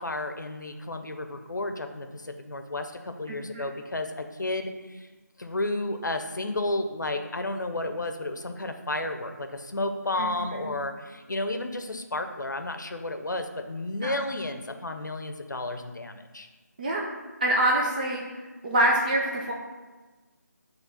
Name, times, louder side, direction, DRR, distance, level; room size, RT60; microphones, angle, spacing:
voice 1, 0.0-5.1 5.4-16.5, left 2 dB, 80° left, 7 dB, 0.7 m, -32 dB
voice 2, 3.3-3.7 10.1-10.7 14.0-14.1 16.8-17.0 17.4-18.2 18.6-19.5, right 1 dB, 30° right, -3 dB, 0.7 m, -25 dB
7.5 x 3.1 x 5.6 m, 1.3 s
figure-of-eight pair, 165°, 10 cm